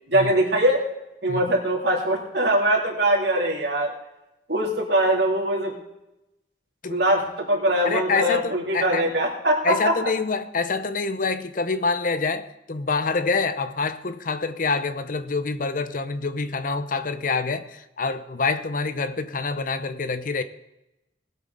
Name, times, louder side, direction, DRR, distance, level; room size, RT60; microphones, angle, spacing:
voice 1, 0.1-0.8 1.2-3.9 4.5-5.7 6.9-10.1, right 1 dB, 70° right, 2.9 m, -22 dB
voice 2, 7.8-9.1 9.6-20.4, left 4 dB, 50° left, 0.7 m, -26 dB
19.5 x 8.3 x 4.0 m
head